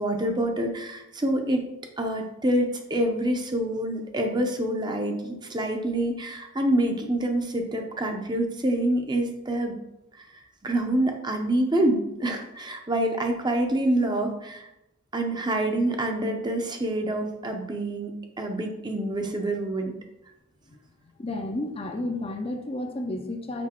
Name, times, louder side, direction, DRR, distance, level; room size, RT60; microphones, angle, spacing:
voice 1, 0.0-1.6 2.0-9.8 10.2-10.3 10.6-14.7 15.1-20.0, right 1 dB, 20° right, 4 dB, 0.7 m, -26 dB
voice 2, 21.2-23.7, left 1 dB, 25° left, 5 dB, 0.5 m, -31 dB
6.0 x 5.1 x 4.4 m, 0.92 s
head